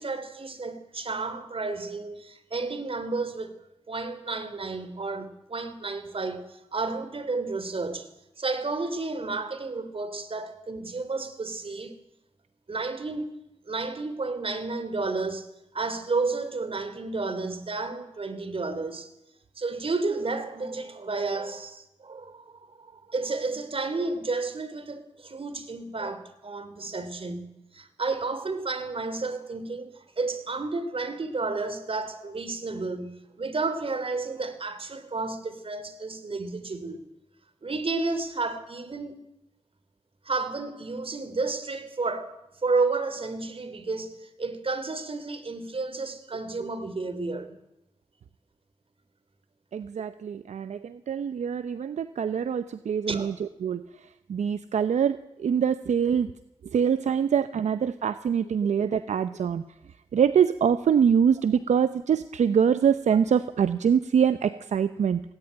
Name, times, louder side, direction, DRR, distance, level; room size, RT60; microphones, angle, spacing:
voice 1, 0.0-3.6 3.9-8.1 8.4-12.0 12.7-13.3 13.7-19.1 19.6-37.0 37.6-39.2 40.3-47.6 53.1-53.3 64.4-64.5, right 3 dB, 50° right, 3.4 m, -31 dB
voice 2, 49.7-53.3 53.6-53.8 54.3-56.3 56.7-59.6 60.1-65.2, right 7 dB, 80° right, 0.7 m, -24 dB
19.5 x 18.0 x 9.0 m
cardioid pair, 45°, 12 cm